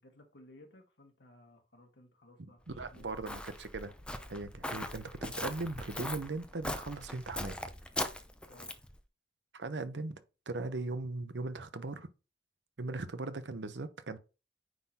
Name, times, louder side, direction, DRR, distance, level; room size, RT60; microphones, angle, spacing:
voice 1, 0.0-3.3 8.4-8.8, left 1 dB, 80° left, 1.7 m, -59 dB
voice 2, 2.4-3.9 4.3-7.6 9.5-10.2 10.5-12.1 12.8-14.2, right 3 dB, 90° right, 0.8 m, -39 dB
Walk footsteps, 2.7-8.9, left 1 dB, 5° left, 0.6 m, -40 dB
9.3 x 3.9 x 2.9 m
head